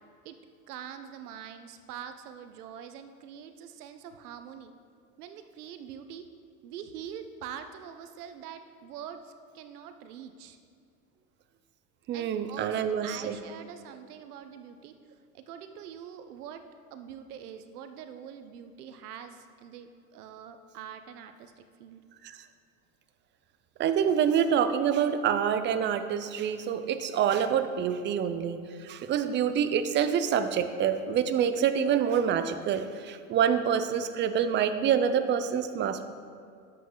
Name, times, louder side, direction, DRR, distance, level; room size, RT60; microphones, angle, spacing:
voice 1, 0.7-4.7 5.2-6.3 6.6-10.6 12.1-14.9 15.3-16.7 16.9-22.0, right 8 dB, 90° right, 9 dB, 1.0 m, -44 dB
voice 2, 12.1-13.4 22.2-22.4 23.8-36.0, right 8 dB, 25° right, 10 dB, 0.5 m, -27 dB
11.0 x 7.8 x 3.9 m, 2.4 s
supercardioid pair, 130°, 44 cm